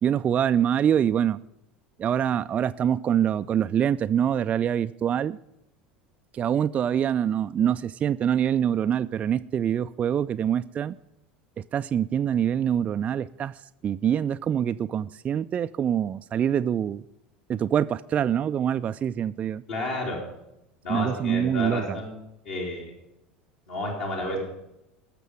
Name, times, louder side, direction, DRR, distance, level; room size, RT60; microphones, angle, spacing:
voice 1, 0.0-1.4 2.0-5.4 6.3-11.0 11.6-17.0 17.5-19.6 20.9-22.0, right 9 dB, 30° right, 11 dB, 0.3 m, -25 dB
voice 2, 19.7-20.2 20.8-22.2 22.4-22.9 23.7-24.4, left 1 dB, 60° left, -3 dB, 3.5 m, -31 dB
20.0 x 6.8 x 5.0 m, 0.87 s
figure-of-eight pair, 75°, 5 cm